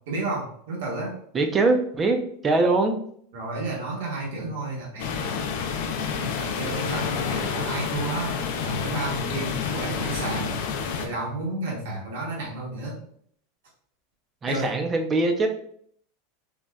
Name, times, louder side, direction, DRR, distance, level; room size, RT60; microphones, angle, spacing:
voice 1, 0.1-1.2 3.3-5.4 6.1-8.3 8.6-10.5 11.0-13.0 14.5-14.8, right 2 dB, 80° right, -3 dB, 1.0 m, -31 dB
voice 2, 1.3-3.0 14.4-15.5, right 3 dB, 15° right, 5 dB, 0.3 m, -22 dB
sound 1, 5.0-11.1, left 6 dB, 60° left, 0.4 m, -29 dB
3.9 x 2.1 x 2.3 m, 0.63 s
supercardioid pair, 170°, 0 cm